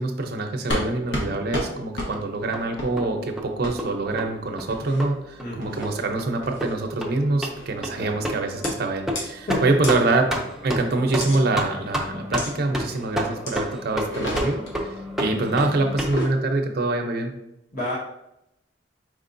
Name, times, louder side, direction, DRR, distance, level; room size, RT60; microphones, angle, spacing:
voice 1, 0.0-10.3 10.6-14.9 15.2-17.3, right 2 dB, 55° right, 3 dB, 0.6 m, -25 dB
sound 1, 0.7-0.9 1.1-1.3 1.5-1.7 2.0-2.1 2.8-2.9 3.6-3.7 4.7-5.0 5.6-6.0 6.4-6.7 7.5-7.8 8.6-8.7 9.1-9.2 9.8-9.9 11.2-11.4 12.4-12.5 13.5-13.6 14.0-14.7 15.9-16.3, left 1 dB, 75° left, 1.1 m, -30 dB
sound 2, 2.1-16.1, equal, ahead, 0.5 m, -31 dB
voice 2, 5.4-5.8 7.9-8.2 9.4-9.8 17.7-18.0, equal, 50° left, -9 dB, 1.2 m, -29 dB
4.9 x 3.6 x 2.6 m, 0.83 s
head